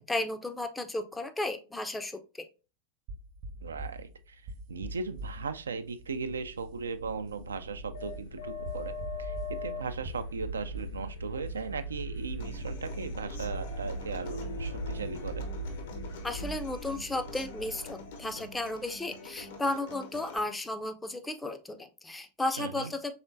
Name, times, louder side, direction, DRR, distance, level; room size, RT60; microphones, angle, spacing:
voice 1, 0.0-2.5 16.2-23.1, left 2 dB, 10° left, 0.5 m, -34 dB
sound 1, 3.1-17.0, right 1 dB, 45° right, 0.7 m, -45 dB
voice 2, 3.6-4.4 4.7-15.5 22.6-22.9, right 4 dB, 70° right, 0.3 m, -38 dB
sound 2, 6.0-19.6, equal, 80° left, 1.1 m, -40 dB
Human voice / Acoustic guitar, 12.4-20.4, left 3 dB, 55° left, 0.8 m, -47 dB
4.9 x 3.5 x 2.5 m
figure-of-eight pair, 90°, 0 cm